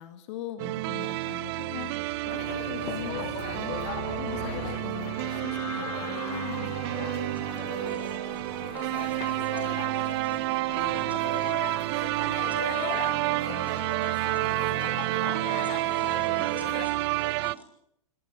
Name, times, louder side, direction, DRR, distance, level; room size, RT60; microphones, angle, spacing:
voice 1, 0.0-6.8, left 12 dB, 50° left, 7 dB, 2.3 m, -41 dB
sound 1, 0.6-17.5, right 19 dB, 45° right, 0.7 m, -29 dB
sound 2, 1.8-13.7, left 6 dB, 70° left, 5.2 m, -45 dB
sound 3, 2.2-16.9, left 16 dB, 30° left, 0.8 m, -40 dB
voice 2, 7.3-17.6, right 2 dB, 10° right, 5 dB, 6.3 m, -49 dB
26.5 x 21.0 x 5.1 m, 0.74 s
hypercardioid pair, 115°, 19 cm